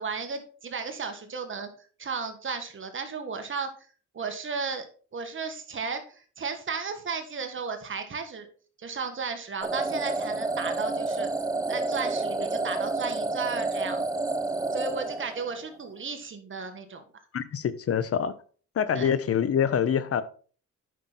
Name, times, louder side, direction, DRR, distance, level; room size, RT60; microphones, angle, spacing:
voice 1, 0.0-1.7 2.0-3.7 4.1-4.8 5.1-8.5 8.8-11.3 11.7-14.1 14.7-17.0 18.9-19.1, right 5 dB, 40° right, 1.7 m, -34 dB
sound 1, 9.6-15.7, right 2 dB, 10° right, 0.7 m, -29 dB
voice 2, 17.3-18.3 18.7-20.2, left 8 dB, 50° left, 0.9 m, -25 dB
9.2 x 6.0 x 4.1 m
cardioid pair, 90°, 30 cm